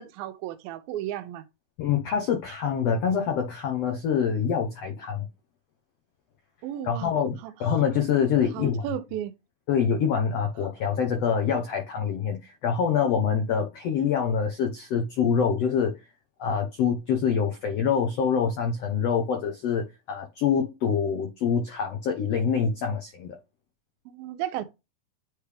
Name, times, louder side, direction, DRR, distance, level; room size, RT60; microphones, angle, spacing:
voice 1, 0.0-1.4 6.6-7.2 7.4-7.5 8.5-9.3 24.1-24.6, right 12 dB, 85° right, 2.5 m, -34 dB
voice 2, 1.8-5.3 6.8-8.8 9.7-16.0 16.4-23.4, left 7 dB, 85° left, 1.4 m, -25 dB
9.9 x 3.4 x 3.4 m
omnidirectional pair, 4.2 m